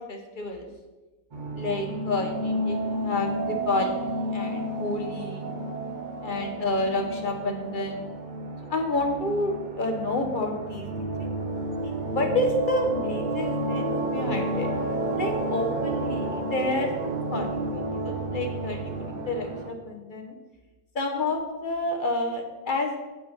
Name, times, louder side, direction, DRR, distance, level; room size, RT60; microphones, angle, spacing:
voice 1, 0.1-0.7 1.6-5.5 6.2-8.1 8.7-11.3 12.0-14.7 15.2-20.3 20.9-23.0, left 2 dB, 40° left, 3 dB, 1.0 m, -29 dB
sound 1, 1.3-19.7, right 1 dB, 45° right, 0.7 m, -31 dB
8.2 x 5.8 x 4.3 m, 1.1 s
omnidirectional pair, 1.6 m